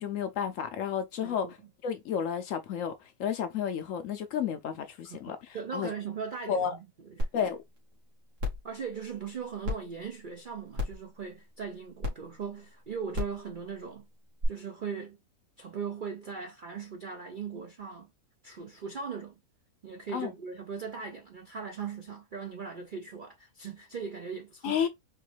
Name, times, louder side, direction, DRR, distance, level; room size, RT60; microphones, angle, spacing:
voice 1, 0.0-1.6 1.8-5.9 6.5-6.8 7.3-7.6 20.1-20.3 24.6-24.9, left 8 dB, 65° left, 0.8 m, -32 dB
voice 2, 1.2-1.5 5.1-5.2 5.5-7.3 8.6-14.1 14.5-15.2 15.6-18.1 18.4-19.3 19.8-24.8, right 6 dB, 65° right, 0.5 m, -39 dB
sound 1, 7.2-7.3 7.8-7.9 8.4-8.6 9.6-9.7 10.7-11.0 12.0-12.1 13.1-13.4 14.4-14.5, left 3 dB, 85° right, 2.3 m, -30 dB
4.4 x 3.1 x 3.2 m
omnidirectional pair, 1.7 m